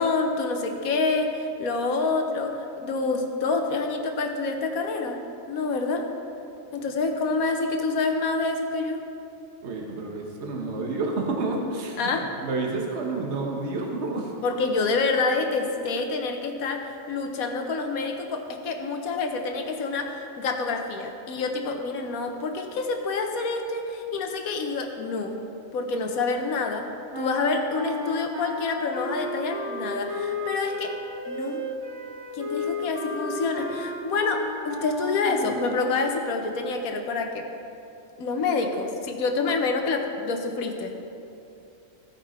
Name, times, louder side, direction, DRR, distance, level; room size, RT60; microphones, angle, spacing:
voice 1, 0.0-5.2 5.5-6.1 6.7-9.0 12.0-12.3 14.4-25.4 25.7-31.0 31.3-31.6 32.3-37.5 38.2-40.9, left 3 dB, 85° left, 4 dB, 1.3 m, -27 dB
voice 2, 9.6-12.1 12.4-14.3, right 3 dB, 55° right, 0 dB, 1.3 m, -29 dB
sound 1, 27.1-36.3, left 2 dB, 20° right, 1.0 m, -33 dB
15.5 x 5.3 x 4.3 m, 2.8 s
omnidirectional pair, 1.4 m